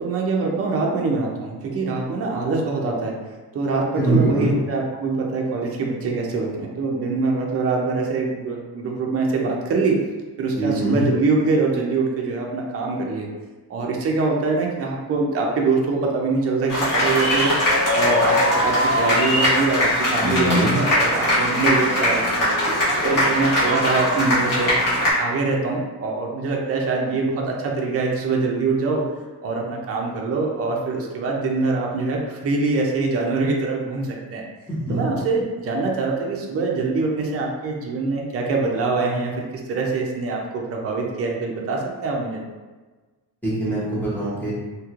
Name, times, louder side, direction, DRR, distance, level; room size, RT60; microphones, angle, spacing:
voice 1, 0.0-3.1 3.5-10.0 10.4-13.3 13.7-17.5 17.9-22.8 23.0-24.7 25.2-29.0 29.4-34.4 34.9-39.3 39.7-42.4, right 3 dB, 35° right, -1 dB, 0.4 m, -24 dB
voice 2, 3.9-4.5 10.6-11.1 20.2-20.7 34.7-35.0 43.4-44.5, right 1 dB, 5° left, -9 dB, 0.6 m, -22 dB
sound 1, 16.7-25.1, left 1 dB, 55° left, 1.4 m, -20 dB
3.0 x 2.9 x 2.4 m, 1.3 s
wide cardioid pair, 175°, 40 cm